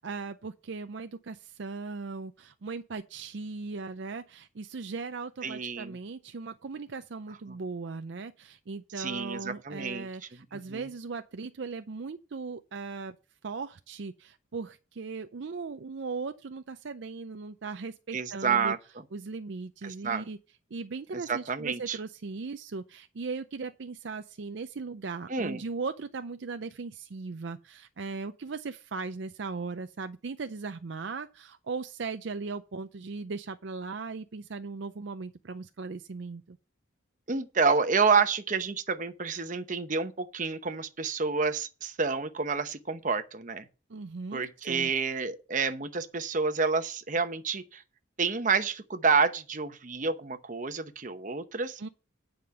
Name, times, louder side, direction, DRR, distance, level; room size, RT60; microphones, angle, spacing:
voice 1, 0.0-13.2 13.4-18.7 19.1-20.4 20.7-36.6 43.9-44.9 51.8-51.9, right 4 dB, 65° right, 0.5 m, -38 dB
voice 2, 5.4-6.0 9.0-10.1 10.7-10.9 18.1-18.8 19.8-20.2 21.1-22.0 25.3-25.6 37.3-43.6 44.3-47.8 48.2-51.8, right 5 dB, 40° right, 0.8 m, -29 dB
9.5 x 5.1 x 6.9 m
head